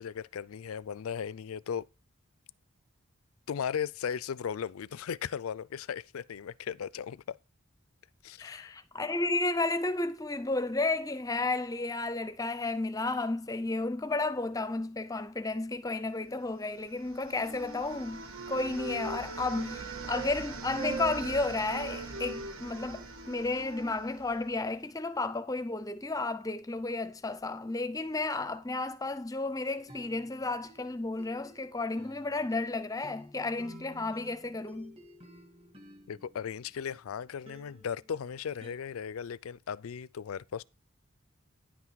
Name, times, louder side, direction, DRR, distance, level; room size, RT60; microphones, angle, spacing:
voice 1, 0.0-1.8 3.5-7.4 8.2-8.8 36.1-40.6, left 7 dB, 85° left, 0.4 m, -37 dB
voice 2, 8.4-35.0, left 2 dB, 15° left, 0.5 m, -32 dB
sound 1, 16.7-24.7, right 4 dB, 85° right, 1.4 m, -44 dB
Wind instrument woodwind instrument, 17.1-20.4 20.7-24.4, right 3 dB, 70° right, 1.5 m, -42 dB
sound 2, 29.7-37.0 37.5-38.8, equal, 25° right, 2.2 m, -54 dB
10.0 x 5.9 x 4.6 m
head